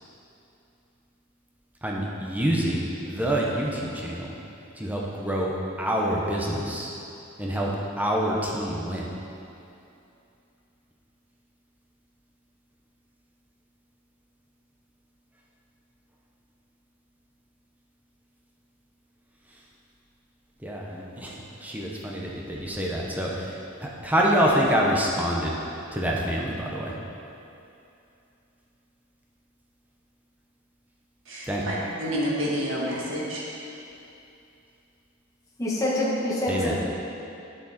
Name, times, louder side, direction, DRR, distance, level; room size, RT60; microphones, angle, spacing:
voice 1, 1.8-4.4 4.8-6.9 7.4-9.1 20.6-25.5 25.9-26.9 31.5-31.6 36.5-36.7, equal, 10° right, -3 dB, 1.0 m, -27 dB
voice 2, 31.2-33.5, equal, 65° right, -5 dB, 1.6 m, -29 dB
voice 3, 35.6-36.8, left 1 dB, 15° left, -7 dB, 1.5 m, -26 dB
10.0 x 6.8 x 4.3 m, 2.7 s
head